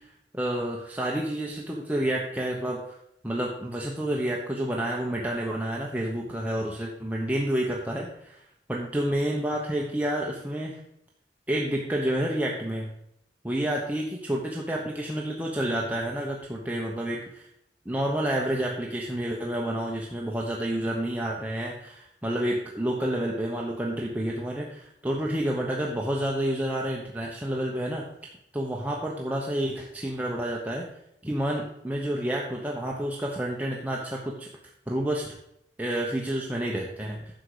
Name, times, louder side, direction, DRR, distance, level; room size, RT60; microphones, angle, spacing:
voice 1, 0.3-2.9 3.2-8.1 8.7-10.8 11.5-12.9 13.4-17.5 17.8-28.1 28.5-30.8 31.2-34.5 34.9-35.3 35.8-37.2, right 1 dB, 10° right, -2 dB, 1.0 m, -29 dB
10.0 x 6.7 x 4.9 m, 0.76 s
head